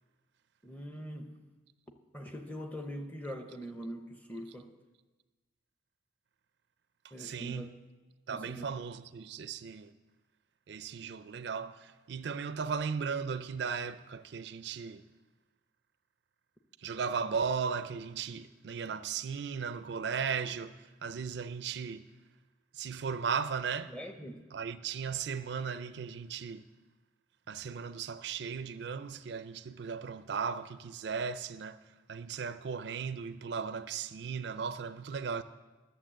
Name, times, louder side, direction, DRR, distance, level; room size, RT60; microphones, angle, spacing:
voice 1, 0.6-1.4 2.1-4.7 7.1-7.7 8.3-8.6 23.9-24.4, equal, 10° left, 0.7 m, -42 dB
voice 2, 7.0-7.7 8.3-9.9 10.7-15.0 16.8-22.1 22.7-23.9 24.5-26.6 27.5-31.8 32.1-35.4, right 6 dB, 60° right, 0.4 m, -36 dB
11.5 x 7.0 x 7.4 m
head